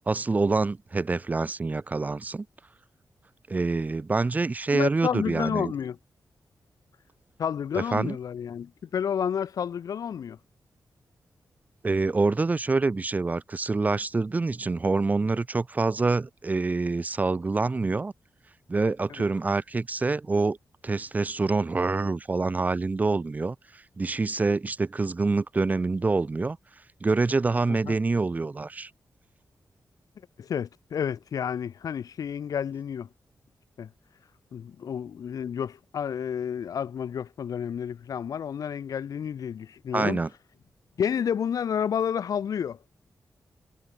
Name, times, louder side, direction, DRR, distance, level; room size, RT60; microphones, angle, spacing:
voice 1, 0.1-2.5 3.5-5.7 7.7-8.2 11.8-18.1 18.7-20.6 20.8-26.6 27.0-28.9 39.9-40.3, right 3 dB, 25° right, 0.6 m, -26 dB
voice 2, 4.7-6.0 7.4-10.4 27.7-28.0 30.4-33.1 33.8-33.9 34.5-40.2 41.0-42.8, left 8 dB, 60° left, 0.4 m, -30 dB
wide cardioid pair, 165°, 7 cm